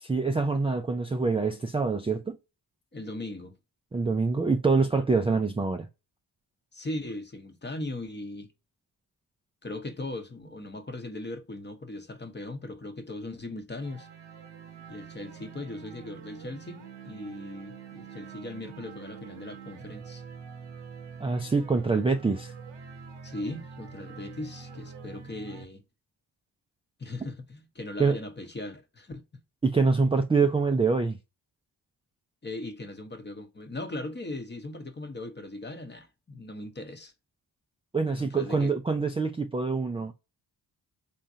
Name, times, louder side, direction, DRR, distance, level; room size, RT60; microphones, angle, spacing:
voice 1, 0.0-2.4 3.9-5.9 21.2-22.5 28.0-28.2 29.6-31.2 37.9-40.1, right 4 dB, 15° right, 0.3 m, -25 dB
voice 2, 2.9-3.6 6.7-8.5 9.6-14.1 14.9-20.2 23.2-25.8 27.0-29.2 32.4-37.1 38.2-38.8, left 2 dB, 25° left, 0.9 m, -39 dB
sound 1, 13.8-25.6, right 6 dB, 85° right, 0.9 m, -45 dB
3.6 x 2.5 x 2.7 m
cardioid pair, 55°, 43 cm